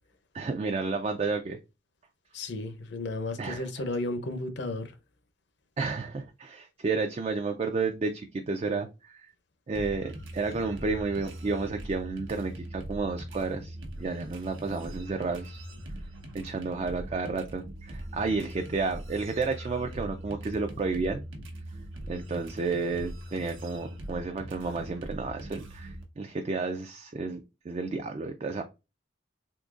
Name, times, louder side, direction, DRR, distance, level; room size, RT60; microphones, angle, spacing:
voice 1, 0.3-1.6 3.4-3.6 5.8-9.3 9.7-15.6 16.3-21.2 22.1-27.4 27.7-28.6, right 4 dB, 35° right, 0.3 m, -31 dB
voice 2, 2.3-4.9, left 2 dB, 65° left, 0.6 m, -33 dB
sound 1, 9.7-26.0, right 1 dB, 85° right, 1.0 m, -41 dB
3.8 x 2.8 x 2.4 m
head